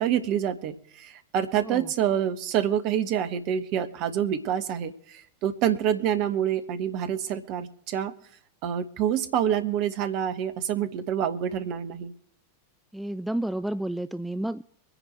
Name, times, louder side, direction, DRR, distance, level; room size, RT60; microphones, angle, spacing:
voice 1, 0.0-8.1 8.6-12.1, right 9 dB, 45° right, 9 dB, 1.3 m, -27 dB
voice 2, 12.9-14.6, right 1 dB, 5° right, 13 dB, 0.4 m, -30 dB
24.0 x 10.0 x 3.3 m, 0.66 s
figure-of-eight pair, 90°, 0 cm